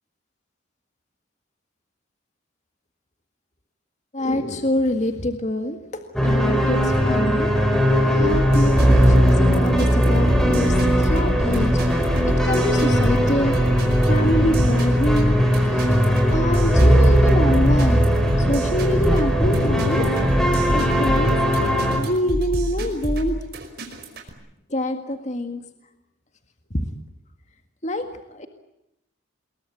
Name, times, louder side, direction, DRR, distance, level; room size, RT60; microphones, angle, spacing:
voice 1, 4.1-5.8 6.2-7.5 8.1-11.9 12.2-13.6 14.1-15.3 16.3-18.1 18.5-20.1 20.7-21.4 22.0-23.4 24.7-25.6 26.7-26.9 27.8-28.5, left 1 dB, 35° left, 6 dB, 1.9 m, -25 dB
sound 1, 6.2-22.0, equal, 5° left, 5.0 m, -18 dB
sound 2, 8.3-24.3, equal, 50° right, 5.3 m, -27 dB
28.0 x 22.0 x 8.6 m, 0.85 s
head